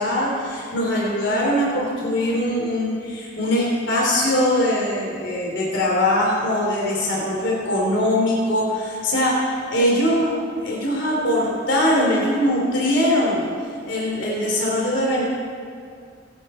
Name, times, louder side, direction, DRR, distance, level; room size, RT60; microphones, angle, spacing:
voice 1, 0.0-10.3 10.6-15.2, left 1 dB, 70° left, -4 dB, 3.5 m, -21 dB
27.5 x 11.0 x 4.5 m, 2.3 s
head